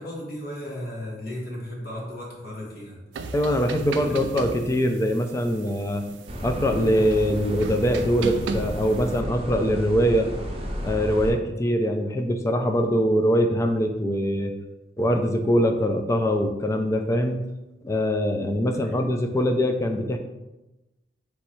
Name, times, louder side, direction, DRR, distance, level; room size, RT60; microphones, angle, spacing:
voice 1, 0.0-3.0 4.0-4.3 18.8-19.0, left 1 dB, 55° left, -3 dB, 1.3 m, -35 dB
sound 1, 3.1-9.2, right 4 dB, 85° right, 0.3 m, -37 dB
voice 2, 3.3-6.0 6.4-10.3 10.8-14.5 15.0-17.4 17.8-20.2, equal, 15° left, 5 dB, 0.3 m, -23 dB
sound 2, 6.3-11.3, equal, 30° right, 0.7 m, -32 dB
3.5 x 3.1 x 4.4 m, 1.0 s
head